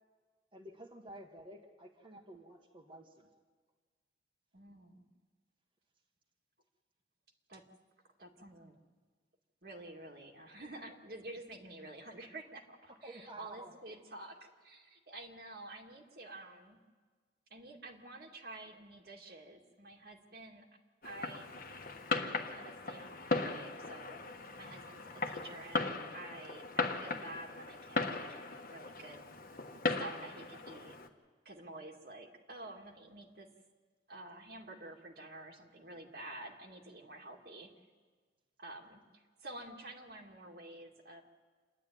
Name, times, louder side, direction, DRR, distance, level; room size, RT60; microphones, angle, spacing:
voice 1, 0.5-3.3 13.0-13.8, right 1 dB, 30° right, 0 dB, 1.6 m, -51 dB
voice 2, 4.5-5.1 7.5-7.6 8.2-8.8 9.6-16.8 17.5-20.7 21.0-21.5 22.1-24.2 24.5-29.3 29.9-31.0 31.5-33.5 34.1-37.7 38.6-41.2, right 2 dB, 55° right, 1 dB, 2.2 m, -50 dB
Fireworks, 21.0-31.1, left 3 dB, 50° left, 1.3 m, -38 dB
27.5 x 11.5 x 9.3 m, 1.5 s
head